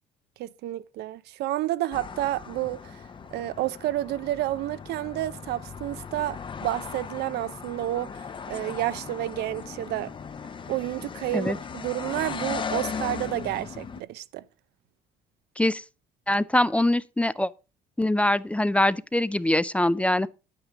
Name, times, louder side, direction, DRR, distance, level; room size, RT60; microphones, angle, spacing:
voice 1, 0.4-3.0 3.3-10.1 10.7-14.4, right 15 dB, 75° right, 0.6 m, -30 dB
sound 1, 1.9-14.0, left 6 dB, 30° left, 0.8 m, -37 dB
voice 2, 16.3-17.5 18.0-20.3, left 1 dB, 5° left, 0.4 m, -23 dB
9.0 x 8.8 x 5.0 m
cardioid pair, 110°, 17 cm